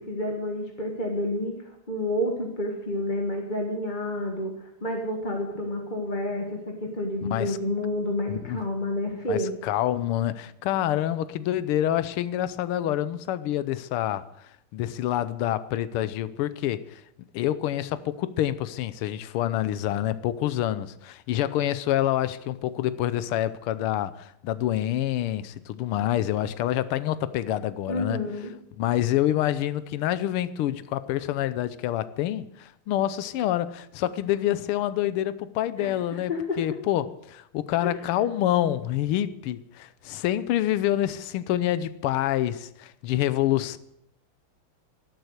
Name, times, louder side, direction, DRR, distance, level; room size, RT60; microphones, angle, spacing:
voice 1, 0.0-9.5 27.9-28.5 35.8-36.6 37.8-37.9, left 1 dB, 25° left, 1 dB, 1.6 m, -29 dB
voice 2, 7.2-7.6 8.3-8.6 9.3-14.2 14.7-17.0 17.3-28.2 28.8-36.3 36.6-43.8, left 12 dB, 85° left, 15 dB, 1.6 m, -27 dB
12.0 x 12.0 x 8.0 m, 0.79 s
omnidirectional pair, 2.4 m